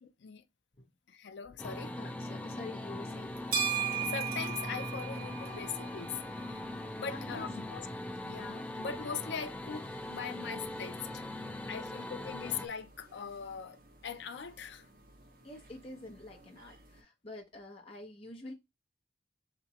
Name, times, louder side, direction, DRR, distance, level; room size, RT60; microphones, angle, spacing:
voice 1, 0.0-0.4 1.1-1.9 4.1-6.6 6.9-7.9 8.2-11.3 11.7-14.8, left 6 dB, 75° left, 0.4 m, -41 dB
sound 1, 1.6-12.7, left 1 dB, 10° left, 0.3 m, -41 dB
voice 2, 2.0-3.3 7.0-7.5 15.4-18.5, left 2 dB, 30° left, 0.8 m, -47 dB
sound 2, 3.1-17.0, right 7 dB, 50° right, 0.8 m, -42 dB
3.3 x 3.0 x 4.1 m
head